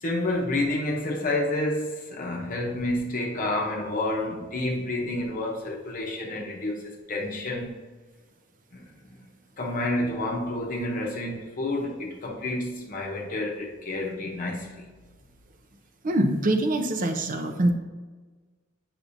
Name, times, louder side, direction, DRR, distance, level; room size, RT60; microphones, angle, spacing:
voice 1, 0.0-7.7 8.7-9.2 9.6-14.8, left 1 dB, 40° left, 0 dB, 0.9 m, -29 dB
voice 2, 16.0-17.7, right 1 dB, 40° right, 6 dB, 0.7 m, -24 dB
8.4 x 5.9 x 2.7 m, 1.4 s
head